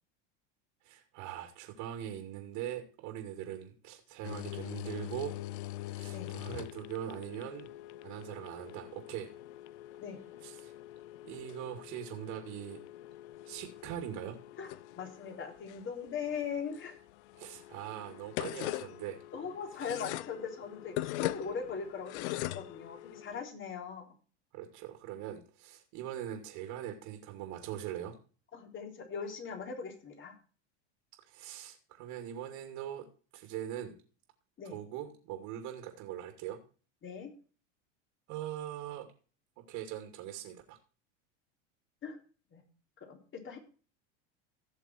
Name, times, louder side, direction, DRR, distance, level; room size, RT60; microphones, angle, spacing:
voice 1, 0.8-5.4 5.8-7.7 8.0-9.3 10.4-10.7 11.2-12.8 13.4-14.4 17.4-19.2 24.5-28.2 31.3-33.1 33.3-33.9 34.7-36.6 38.3-39.1 39.7-40.8, right 11 dB, 55° right, 5 dB, 2.7 m, -41 dB
sound 1, 4.2-23.4, left 16 dB, 70° left, 0.7 m, -43 dB
voice 2, 14.6-17.0 19.3-24.1 28.5-30.3 34.6-34.8 37.0-37.3 42.0-42.2 42.5-42.6 43.0-43.6, left 6 dB, 35° left, 3 dB, 3.6 m, -40 dB
17.0 x 6.7 x 4.6 m, 0.39 s
supercardioid pair, 120°, 36 cm